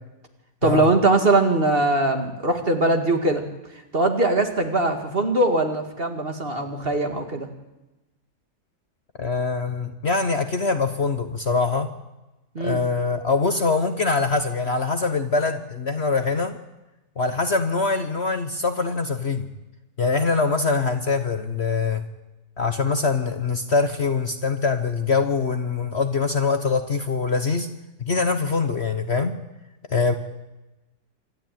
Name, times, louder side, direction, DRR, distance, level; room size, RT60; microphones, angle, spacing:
voice 1, 0.6-3.4 3.9-7.5 12.5-12.8, right 2 dB, 35° right, 5 dB, 2.2 m, -21 dB
voice 2, 9.2-11.9 12.6-16.6 17.2-19.5 20.0-22.0 22.6-27.7 28.0-29.3 29.9-30.1, left 4 dB, 45° left, 8 dB, 1.2 m, -23 dB
26.5 x 12.0 x 9.3 m, 1.0 s
omnidirectional pair, 1.8 m